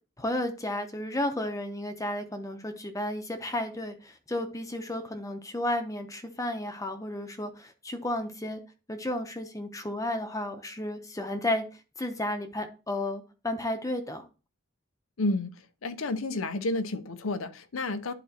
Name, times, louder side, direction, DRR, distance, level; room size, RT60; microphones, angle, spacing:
voice 1, 0.2-8.6 8.9-11.6 12.0-14.3, left 1 dB, 15° left, 0.7 m, -33 dB
voice 2, 15.2-15.5 15.8-18.1, left 2 dB, 90° left, 0.7 m, -30 dB
11.0 x 4.1 x 2.8 m
head